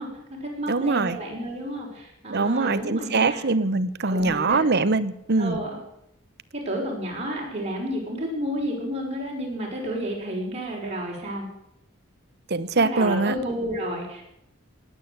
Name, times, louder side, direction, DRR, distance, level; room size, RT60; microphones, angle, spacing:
voice 1, 0.0-3.4 4.1-4.6 5.4-5.7 6.5-11.5 12.8-14.2, equal, 30° right, -2 dB, 5.8 m, -31 dB
voice 2, 0.7-1.2 2.3-5.6 12.5-13.3, right 3 dB, 55° right, 14 dB, 1.0 m, -23 dB
19.5 x 9.2 x 7.9 m, 0.78 s
head